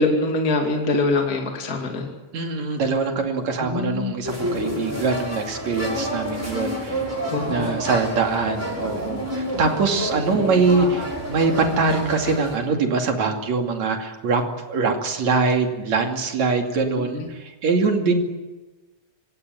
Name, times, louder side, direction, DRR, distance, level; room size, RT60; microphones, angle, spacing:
voice 1, 0.0-2.1 3.6-4.2 7.3-7.8 17.1-17.3, left 2 dB, 30° left, 2 dB, 2.8 m, -23 dB
voice 2, 2.3-7.0 7.5-14.4 14.7-18.2, right 4 dB, 65° right, 4 dB, 3.8 m, -23 dB
sound 1, 4.2-12.6, equal, 5° right, 6.4 m, -29 dB
26.0 x 17.5 x 9.3 m, 1.2 s
omnidirectional pair, 3.4 m